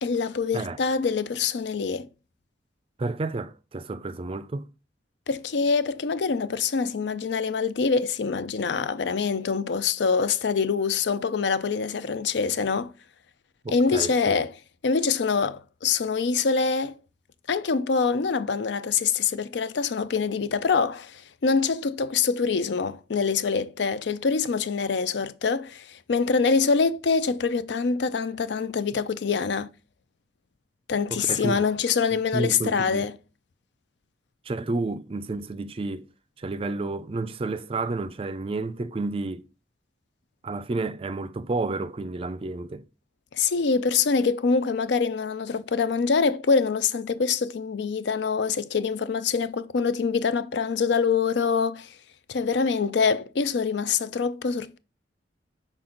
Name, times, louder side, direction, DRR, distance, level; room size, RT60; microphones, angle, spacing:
voice 1, 0.0-2.1 5.3-12.9 13.7-14.5 14.8-16.9 17.5-29.7 30.9-33.2 43.3-51.9 52.3-54.8, left 5 dB, 70° left, 0.5 m, -25 dB
voice 2, 3.0-4.7 13.6-14.4 31.1-31.6 32.1-33.1 34.5-36.1 36.4-39.4 40.4-42.8, right 3 dB, 30° right, 0.4 m, -31 dB
6.0 x 4.3 x 3.8 m
head